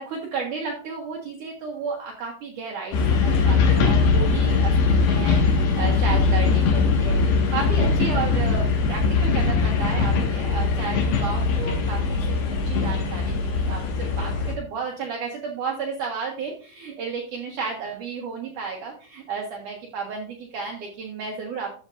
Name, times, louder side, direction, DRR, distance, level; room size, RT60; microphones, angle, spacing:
voice 1, 0.0-21.7, right 5 dB, 70° right, 0 dB, 2.0 m, -33 dB
sound 1, 2.9-14.5, left 4 dB, 60° left, 3.5 m, -21 dB
13.5 x 8.0 x 2.6 m, 0.40 s
omnidirectional pair, 5.8 m